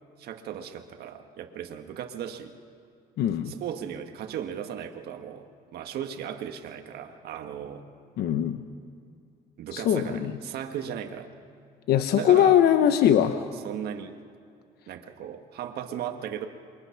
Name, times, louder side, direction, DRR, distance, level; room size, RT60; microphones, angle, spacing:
voice 1, 0.2-2.5 3.5-7.9 9.6-11.3 12.1-12.6 13.6-14.1 14.9-16.5, right 9 dB, 70° right, 5 dB, 1.6 m, -36 dB
voice 2, 3.2-3.5 8.2-8.6 9.7-10.3 11.9-13.4, left 10 dB, 70° left, 9 dB, 1.0 m, -21 dB
28.0 x 22.5 x 5.9 m, 2.4 s
cardioid pair, 110°, 17 cm